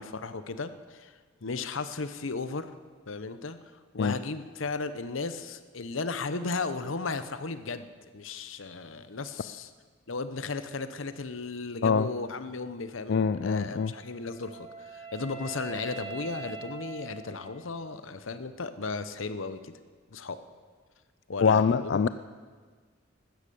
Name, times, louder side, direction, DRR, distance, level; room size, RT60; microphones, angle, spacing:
voice 1, 0.0-2.7 3.1-9.7 10.1-19.7 20.1-20.4 21.3-22.1, left 4 dB, 80° left, 11 dB, 0.9 m, -35 dB
voice 2, 13.1-13.9 21.4-22.1, left 5 dB, 60° left, 12 dB, 0.4 m, -24 dB
Wind instrument woodwind instrument, 13.7-17.9, right 6 dB, 85° right, 4.2 m, -43 dB
15.0 x 13.0 x 6.9 m, 1.5 s
head